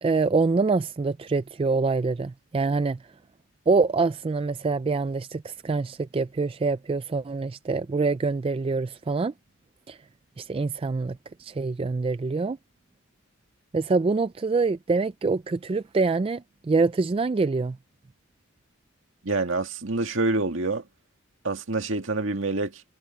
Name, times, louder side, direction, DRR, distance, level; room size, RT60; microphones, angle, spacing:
voice 1, 0.0-3.0 3.7-9.3 9.9-10.0 10.4-12.6 13.7-17.8, right 4 dB, 25° right, 0.3 m, -25 dB
voice 2, 19.2-20.8 21.4-22.8, right 2 dB, 65° right, 2.1 m, -26 dB
head